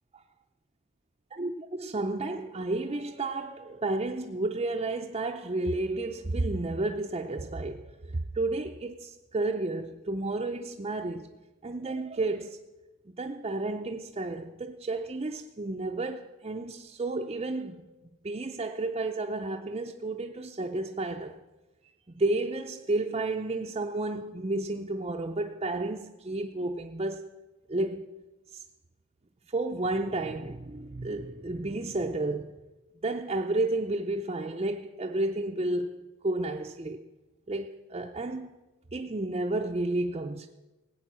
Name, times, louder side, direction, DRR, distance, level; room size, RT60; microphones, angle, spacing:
voice 1, 1.3-11.3 11.6-12.6 13.1-17.9 18.2-21.4 22.1-27.3 27.7-28.1 28.5-28.6 29.5-32.6 33.0-36.0 36.2-37.0 37.5-38.5 38.9-40.5, right 2 dB, 25° right, 0.5 m, -31 dB
18.0 x 8.7 x 6.1 m
head